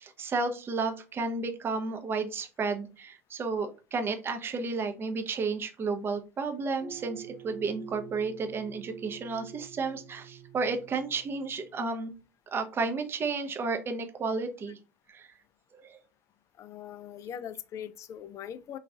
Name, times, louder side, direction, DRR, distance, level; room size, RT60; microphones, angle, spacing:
voice 1, 0.0-12.1 12.5-14.8 15.1-15.3 15.7-16.0, right 4 dB, 30° right, 0.6 m, -32 dB
sound 1, 6.8-12.0, right 9 dB, 90° right, 0.9 m, -47 dB
voice 2, 16.6-18.8, left 9 dB, 40° left, 0.3 m, -41 dB
3.8 x 2.4 x 2.3 m
figure-of-eight pair, 70°, 8 cm